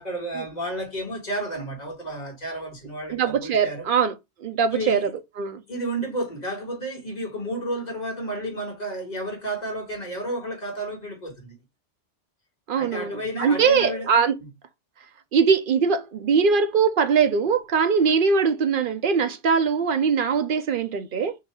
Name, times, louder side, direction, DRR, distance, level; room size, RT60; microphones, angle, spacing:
voice 1, 0.0-3.8 4.7-5.1 5.7-11.5 12.8-14.1, right 1 dB, 35° left, 1.7 m, -31 dB
voice 2, 3.1-4.1 4.4-5.1 5.4-5.6 12.7-14.3 15.3-21.4, right 6 dB, 60° right, 0.6 m, -21 dB
3.8 x 2.7 x 4.3 m
omnidirectional pair, 1.2 m